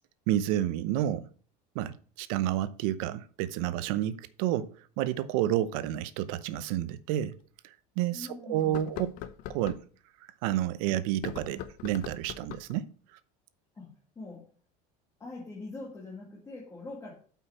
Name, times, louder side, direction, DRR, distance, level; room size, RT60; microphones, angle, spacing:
voice 1, 0.3-1.3 1.7-7.4 8.0-9.1 9.5-9.8 10.4-12.9, right 12 dB, 70° right, 0.8 m, -30 dB
sound 1, 6.6-6.7 7.3-7.4 8.6-9.8 11.1-12.8, left 10 dB, 50° left, 0.8 m, -41 dB
voice 2, 8.1-8.8 13.8-14.5 15.2-17.1, left 2 dB, 15° left, 1.9 m, -43 dB
8.4 x 5.6 x 4.3 m
cardioid pair, 160°, 18 cm